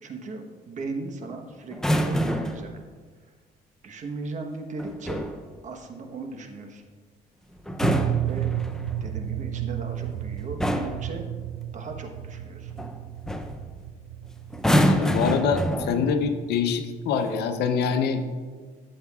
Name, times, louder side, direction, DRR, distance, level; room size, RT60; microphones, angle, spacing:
voice 1, 0.0-2.7 3.2-3.3 3.8-5.3 5.6-6.8 8.3-8.5 9.0-11.3 11.7-12.8, right 3 dB, 45° right, 4 dB, 1.1 m, -37 dB
sound 1, 1.7-2.7 4.8-5.4 7.6-8.9 10.0-10.2 10.6-11.1 12.8-13.0 13.3-13.6 14.5-16.2 17.1-17.4, equal, 5° left, 0.5 m, -26 dB
sound 2, 7.8-16.3, right 11 dB, 85° right, 0.4 m, -32 dB
voice 2, 14.9-18.2, left 6 dB, 75° left, 8 dB, 0.7 m, -25 dB
13.0 x 7.3 x 2.4 m, 1.5 s
cardioid pair, 110°, 17 cm